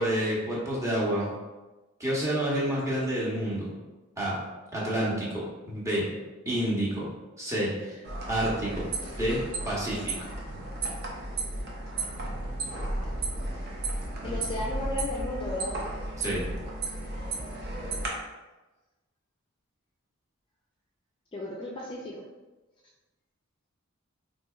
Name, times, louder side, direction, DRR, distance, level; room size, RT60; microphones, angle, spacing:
voice 1, 0.0-1.3 2.0-3.7 4.2-4.4 4.7-6.1 6.5-7.1 7.4-8.0 8.3-8.9 9.2-10.3 16.2-16.5, right 1 dB, 15° right, -6 dB, 0.9 m, -29 dB
sound 1, 8.0-18.1, right 2 dB, 50° right, 0.7 m, -34 dB
voice 2, 12.7-13.2 14.2-15.8 21.3-22.2, left 1 dB, 25° left, -4 dB, 0.4 m, -35 dB
4.1 x 2.7 x 2.3 m, 1.1 s
head